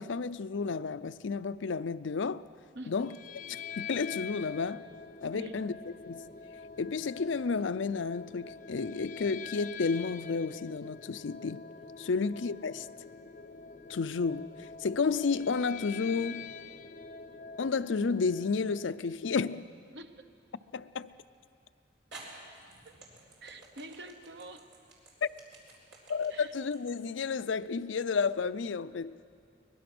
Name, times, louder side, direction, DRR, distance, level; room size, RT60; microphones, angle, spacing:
voice 1, 0.0-2.4 2.9-3.1 3.8-4.8 5.2-5.7 6.1-6.2 6.8-11.6 12.0-12.9 13.9-16.5 17.6-19.6 20.7-21.1 25.2-25.3 26.1-29.2, left 5 dB, 85° left, 0.5 m, -31 dB
sound 1, 3.0-19.1, left 5 dB, 45° left, 0.7 m, -45 dB
voice 2, 5.3-5.7 12.1-12.3 19.9-20.3 22.8-23.0 23.4-24.7 26.3-26.5, right 2 dB, 65° right, 1.0 m, -46 dB
sound 2, 18.0-18.6 19.4-19.5 21.4-21.5 22.1-28.3, right 3 dB, 85° right, 4.5 m, -52 dB
23.0 x 21.0 x 6.1 m
head